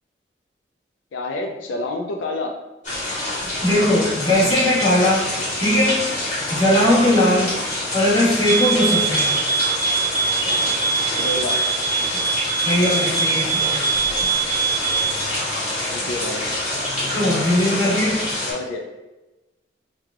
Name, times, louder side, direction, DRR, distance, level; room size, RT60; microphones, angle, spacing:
voice 1, 1.1-2.5 7.1-7.5 9.4-9.8 11.2-11.6 15.8-16.5 17.0-17.4 18.5-18.9, left 2 dB, 85° left, 3 dB, 0.4 m, -29 dB
sound 1, 2.8-18.5, left 1 dB, 40° left, 1.4 m, -26 dB
voice 2, 3.6-5.3 5.6-6.1 6.5-7.5 7.9-9.4 12.6-13.9 17.1-18.2, left 1 dB, 20° left, -9 dB, 1.2 m, -19 dB
sound 2, 8.4-15.2, right 5 dB, 35° right, 0.7 m, -23 dB
3.2 x 2.2 x 3.5 m, 1.1 s
head